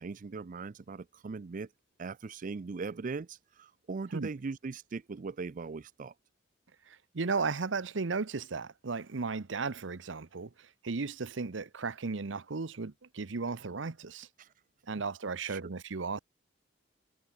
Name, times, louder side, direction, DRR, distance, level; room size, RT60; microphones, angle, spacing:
voice 1, 0.0-1.7 2.0-6.1 14.4-14.5 15.5-15.6, right 4 dB, 45° right, 0.5 m, -39 dB
voice 2, 6.9-14.3 14.9-16.2, right 4 dB, 80° right, 0.8 m, -35 dB
head